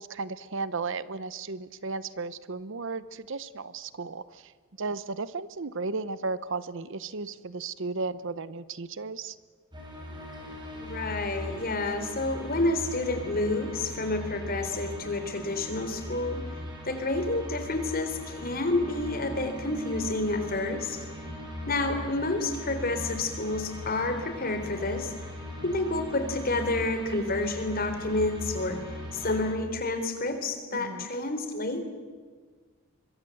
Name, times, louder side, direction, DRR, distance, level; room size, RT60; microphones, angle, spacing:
voice 1, 0.0-4.5 4.8-9.4 30.7-31.1, right 3 dB, 60° right, 16 dB, 0.9 m, -34 dB
sound 1, 9.7-29.6, equal, 20° right, 6.2 m, -39 dB
voice 2, 10.8-16.4 16.9-21.0 21.7-25.1 25.6-28.8 29.1-31.8, left 2 dB, 45° left, 7 dB, 3.9 m, -29 dB
25.5 x 23.0 x 7.9 m, 1.5 s
head